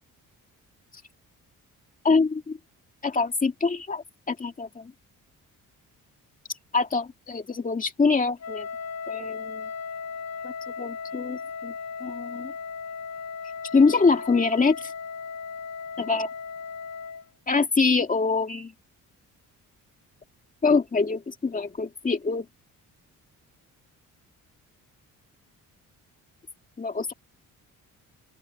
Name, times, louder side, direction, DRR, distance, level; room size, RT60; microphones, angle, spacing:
voice 1, 2.0-2.6 3.0-4.9 6.7-8.7 9.1-9.7 10.4-11.7 12.0-12.5 13.7-14.9 16.0-16.3 17.5-18.7 20.6-22.5 26.8-27.1, left 4 dB, 25° left, 2.2 m, -24 dB
Wind instrument woodwind instrument, 8.4-17.3, left 5 dB, 50° left, 1.1 m, -36 dB
open air
cardioid pair, 140°, 33 cm